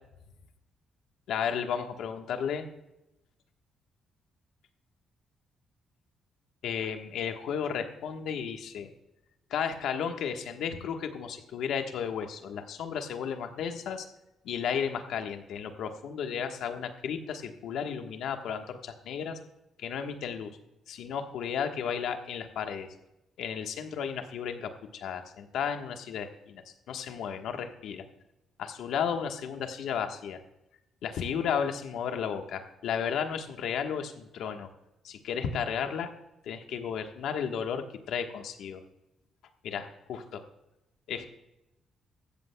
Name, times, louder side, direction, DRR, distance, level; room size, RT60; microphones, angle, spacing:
voice 1, 1.3-2.7 6.6-8.9 9.5-14.1 14.4-19.4 19.8-20.6 20.9-22.9 23.4-28.0 28.6-30.4 31.0-34.7 35.0-36.1 36.4-38.8 39.6-40.4 41.1-41.3, left 7 dB, 80° left, 5 dB, 1.3 m, -33 dB
16.0 x 13.5 x 2.3 m, 0.89 s
cardioid pair, 90°, 0 cm